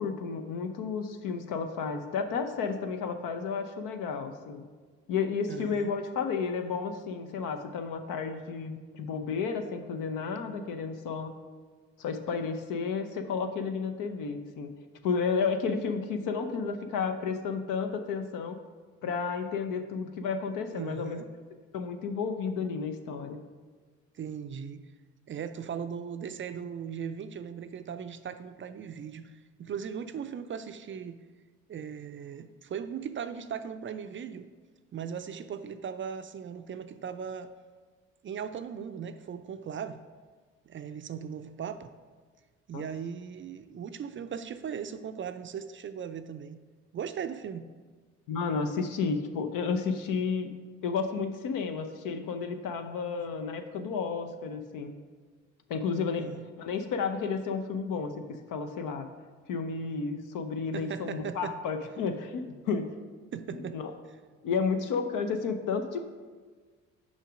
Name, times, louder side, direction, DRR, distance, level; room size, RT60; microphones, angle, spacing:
voice 1, 0.0-4.7 5.1-11.3 12.0-14.7 15.0-18.6 19.0-21.2 21.7-23.4 42.7-42.8 48.3-50.5 50.8-54.9 55.7-56.3 56.6-58.1 58.5-59.1 59.5-62.9 63.5-63.9 64.4-66.0, left 5 dB, 65° left, 7 dB, 0.7 m, -32 dB
voice 2, 5.5-5.9 20.7-21.3 24.1-24.9 25.3-31.2 31.7-34.5 34.9-37.5 38.2-40.0 40.7-41.9 42.7-46.6 46.9-47.7 56.2-56.5 60.7-61.6 63.3-63.8, right 7 dB, 35° right, 10 dB, 0.4 m, -38 dB
6.3 x 5.2 x 4.9 m, 1.5 s
hypercardioid pair, 50°, 35 cm